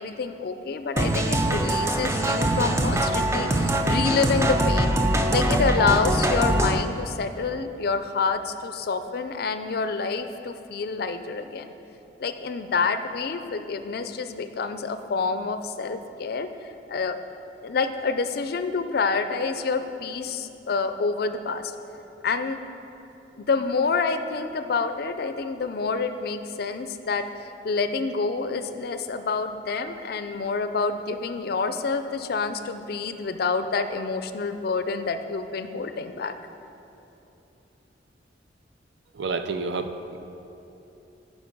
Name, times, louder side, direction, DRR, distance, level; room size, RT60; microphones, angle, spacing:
voice 1, 0.0-4.9 5.3-11.7 12.2-16.5 16.9-17.2 17.6-21.7 22.2-22.6 23.4-36.3, left 4 dB, 55° left, 9 dB, 0.4 m, -27 dB
sound 1, 1.0-6.8, right 1 dB, 15° right, 0.3 m, -23 dB
voice 2, 39.1-40.2, right 4 dB, 70° right, 8 dB, 0.5 m, -29 dB
9.5 x 5.2 x 5.2 m, 2.9 s
head